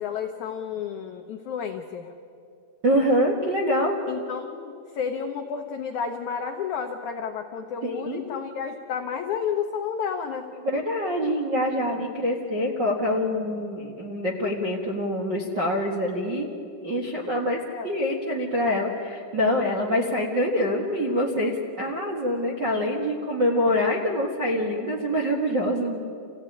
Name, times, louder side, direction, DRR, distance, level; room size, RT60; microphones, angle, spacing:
voice 1, 0.0-2.1 4.1-10.5 17.4-17.9, left 7 dB, 90° left, 4 dB, 1.6 m, -31 dB
voice 2, 2.8-4.0 7.8-8.2 10.6-16.5 16.8-17.6 17.8-26.0, equal, 55° right, -2 dB, 1.2 m, -25 dB
27.5 x 16.0 x 9.9 m, 2.5 s
omnidirectional pair, 5.0 m